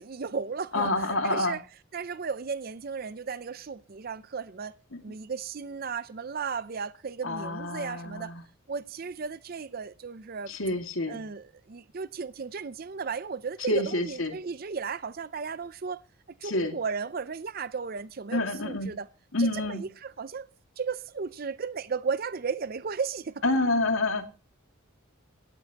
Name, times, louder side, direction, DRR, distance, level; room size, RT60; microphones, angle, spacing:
voice 1, 0.0-1.6 1.9-4.8 5.0-8.3 8.7-10.5 11.1-16.0 16.4-19.1 19.4-20.5 20.8-23.4, right 5 dB, 45° right, 0.5 m, -35 dB
voice 2, 0.7-1.6 4.9-5.0 7.2-8.4 10.5-11.2 13.7-14.4 16.4-16.8 18.3-18.9 19.3-19.8 23.4-24.3, left 2 dB, 75° left, 2.2 m, -28 dB
17.0 x 14.0 x 2.9 m
head